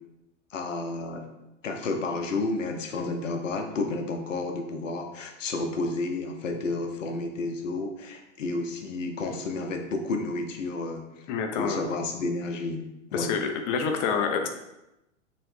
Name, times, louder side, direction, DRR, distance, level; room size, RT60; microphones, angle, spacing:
voice 1, 0.5-1.2 1.6-11.3 11.5-12.8 13.1-13.3, left 3 dB, 80° left, 4 dB, 0.7 m, -31 dB
voice 2, 11.3-11.8 13.1-14.5, left 6 dB, 35° left, 4 dB, 0.5 m, -27 dB
3.1 x 2.9 x 3.1 m, 0.92 s
hypercardioid pair, 100°, 37 cm